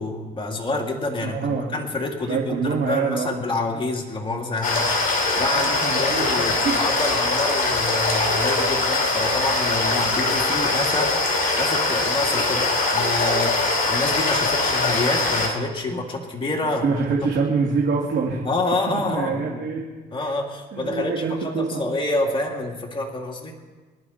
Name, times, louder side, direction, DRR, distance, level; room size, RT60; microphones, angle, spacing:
voice 1, 0.0-17.0 18.4-19.6 20.1-23.6, left 2 dB, 25° left, -1 dB, 2.8 m, -28 dB
voice 2, 1.2-1.8 2.3-3.3 5.5-6.3 6.6-6.8 16.8-18.5 18.9-19.8 20.7-21.8, right 5 dB, 70° right, -2 dB, 2.6 m, -25 dB
sound 1, 4.6-15.5, left 3 dB, 45° left, 3.8 m, -22 dB
26.0 x 11.0 x 4.4 m, 1.3 s
cardioid pair, 90°, 20 cm